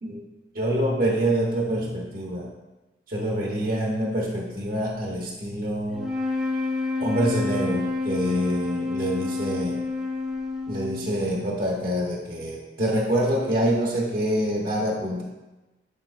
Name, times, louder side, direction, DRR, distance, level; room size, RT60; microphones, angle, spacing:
voice 1, 0.5-2.5 3.1-6.1 7.0-9.8 10.7-15.2, right 1 dB, 50° right, -2 dB, 1.0 m, -26 dB
sound 1, 5.9-11.4, left 3 dB, 5° right, 0.8 m, -29 dB
8.7 x 4.4 x 2.5 m, 1.1 s
head